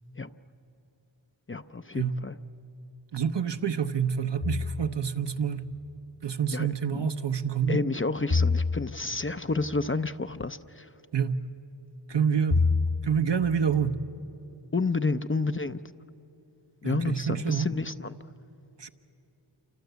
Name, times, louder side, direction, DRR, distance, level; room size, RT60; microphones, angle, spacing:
voice 1, 1.5-2.4 6.5-7.1 7.7-10.9 14.7-15.8 16.8-18.2, left 3 dB, 25° left, 0.6 m, -30 dB
voice 2, 3.1-5.7 6.2-7.8 11.1-11.4 12.1-12.7 13.0-14.0 16.8-17.7 18.8-18.9, right 7 dB, 60° right, 1.0 m, -27 dB
sound 1, 4.4-5.2 8.3-9.4 12.5-13.4, left 4 dB, 60° left, 1.8 m, -27 dB
28.5 x 25.5 x 8.1 m
wide cardioid pair, 55°, 47 cm